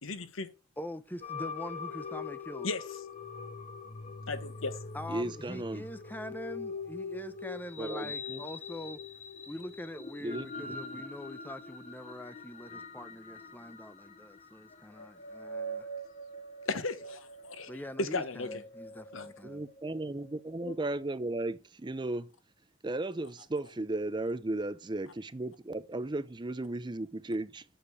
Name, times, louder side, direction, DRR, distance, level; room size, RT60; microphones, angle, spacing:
voice 1, 0.0-0.5 2.6-2.8 4.3-4.8 16.7-17.7 18.0-18.6 19.1-19.3, left 3 dB, 85° left, 1.1 m, -35 dB
voice 2, 0.8-2.7 4.9-9.0 9.5-15.9 17.7-19.6, left 1 dB, 10° left, 0.8 m, -43 dB
sound 1, 1.2-20.7, left 3 dB, 35° left, 0.9 m, -43 dB
voice 3, 5.1-5.8 7.8-8.4 10.2-11.0 19.4-22.3 22.8-27.6, right 2 dB, 25° right, 0.6 m, -35 dB
7.9 x 6.7 x 8.3 m
head